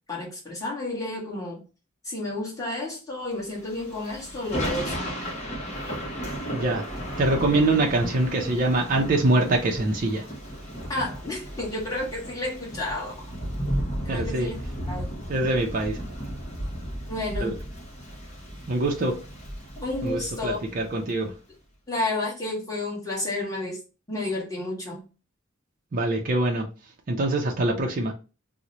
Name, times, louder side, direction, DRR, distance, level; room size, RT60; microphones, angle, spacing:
voice 1, 0.1-1.6 2.0-5.2 10.9-13.2 14.0-15.1 17.1-17.5 19.8-20.7 21.9-23.8 24.1-25.1, left 2 dB, 15° left, 1.3 m, -31 dB
Thunder / Rain, 3.6-21.1, equal, 35° left, 1.0 m, -34 dB
voice 2, 6.5-6.8 7.2-10.2 14.1-14.5 15.3-16.0 17.4-17.5 18.7-19.1 20.0-21.3 25.9-26.7 27.1-28.1, right 2 dB, 40° right, 0.5 m, -24 dB
2.9 x 2.1 x 3.8 m
head